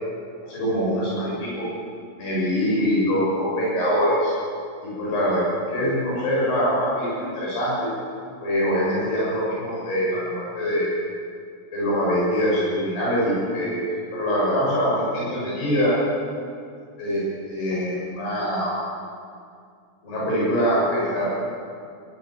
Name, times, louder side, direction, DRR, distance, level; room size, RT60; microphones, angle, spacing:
voice 1, 0.4-1.7 2.2-4.3 4.8-5.4 5.7-7.9 8.4-10.9 11.7-13.8 14.1-15.9 17.0-17.2 17.5-18.7 20.0-21.3, equal, 80° left, -6 dB, 9.2 m, -23 dB
22.0 x 18.0 x 8.8 m, 2.3 s
omnidirectional pair, 4.7 m